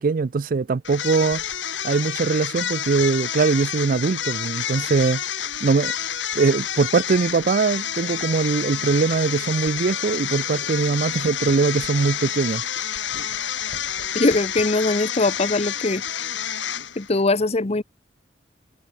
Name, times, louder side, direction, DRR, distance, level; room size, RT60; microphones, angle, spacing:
voice 1, 0.0-1.4 1.8-5.2 5.6-5.9 6.3-12.6, right 4 dB, 50° right, 0.4 m, -21 dB
sound 1, 0.8-17.2, left 9 dB, 90° left, 3.1 m, -29 dB
sound 2, 5.5-15.3, left 2 dB, 60° left, 6.2 m, -48 dB
voice 2, 14.1-16.0 17.0-17.8, left 2 dB, 35° left, 0.8 m, -21 dB
head